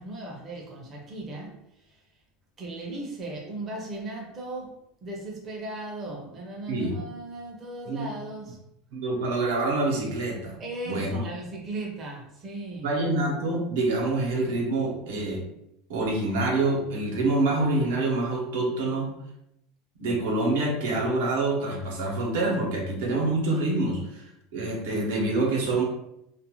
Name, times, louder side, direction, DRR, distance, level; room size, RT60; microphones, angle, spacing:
voice 1, 0.0-2.1 2.6-8.6 10.6-12.9, right 2 dB, 20° right, -2 dB, 0.5 m, -37 dB
voice 2, 8.9-10.5 10.9-11.2 12.8-15.4 15.9-19.1 20.0-25.8, right 2 dB, 85° right, -1 dB, 0.9 m, -26 dB
2.4 x 2.3 x 2.9 m, 0.79 s
supercardioid pair, 180°, 0 cm